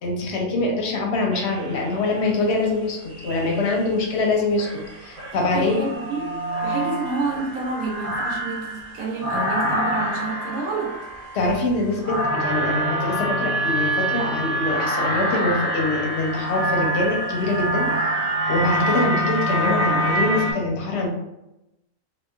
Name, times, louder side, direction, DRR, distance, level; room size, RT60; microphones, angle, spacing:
voice 1, 0.0-5.8 11.3-21.1, left 2 dB, 60° left, 0 dB, 0.8 m, -24 dB
sound 1, 1.3-2.1 3.1-3.8 4.6-20.5, right 1 dB, 40° right, 0.5 m, -26 dB
voice 2, 5.1-6.3 6.6-11.0, right 3 dB, 75° right, -2 dB, 1.2 m, -29 dB
2.8 x 2.2 x 2.3 m, 0.90 s
omnidirectional pair, 1.5 m